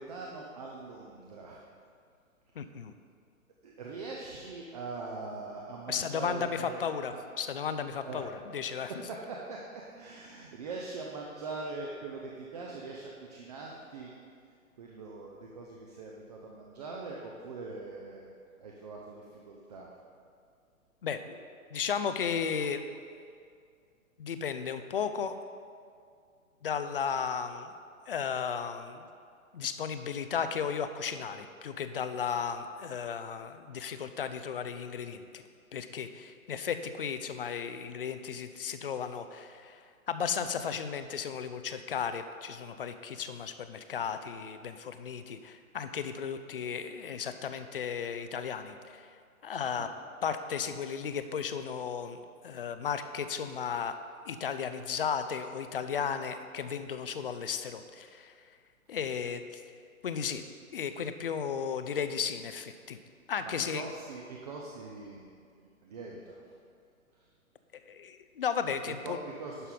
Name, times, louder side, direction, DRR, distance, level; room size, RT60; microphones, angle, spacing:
voice 1, 0.0-1.6 3.6-6.8 7.1-7.2 7.9-9.2 9.4-9.7 10.0-14.1 14.8-18.3 18.6-19.9 21.7-21.8 22.3-23.3 25.0-25.3 49.8-49.9 57.2-57.4 58.9-59.2 63.4-65.3 65.6-66.5 67.1-67.3 68.7-69.7, right 3 dB, 30° right, -2 dB, 0.6 m, -43 dB
voice 2, 2.6-2.9 5.9-8.9 21.0-21.4 21.7-22.9 24.2-25.4 26.6-27.7 28.1-29.1 29.5-35.4 35.7-39.8 40.1-49.1 49.4-49.9 50.2-53.9 54.3-58.3 58.9-59.6 60.0-60.4 60.7-63.0 63.3-63.8 67.9-69.2, left 7 dB, 40° left, 10 dB, 0.5 m, -34 dB
11.0 x 5.6 x 3.8 m, 2.3 s
figure-of-eight pair, 125°, 43 cm